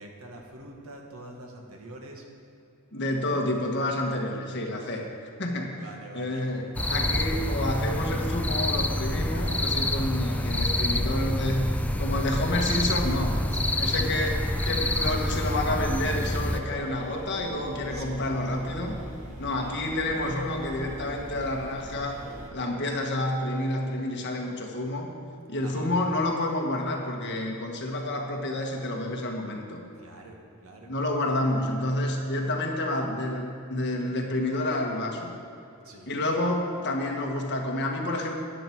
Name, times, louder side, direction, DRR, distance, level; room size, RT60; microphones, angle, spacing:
voice 1, 0.0-2.3 2.9-3.0 4.7-5.1 5.7-6.7 13.5-13.8 14.6-15.4 17.9-18.1 18.4-18.8 19.4-19.9 25.6-25.9 29.9-30.9 35.8-36.1, right 1 dB, 80° right, 1 dB, 1.7 m, -46 dB
voice 2, 2.9-5.0 5.4-5.8 6.1-11.7 12.0-13.4 13.8-19.0 19.4-22.2 22.5-25.1 25.5-29.8 30.9-35.3 36.1-38.3, left 1 dB, 55° left, 1 dB, 1.5 m, -29 dB
sound 1, 6.7-16.6, left 1 dB, 5° left, 0.4 m, -27 dB
sound 2, 15.8-22.5, right 1 dB, 35° right, 1.7 m, -41 dB
12.5 x 10.0 x 4.6 m, 2.8 s
head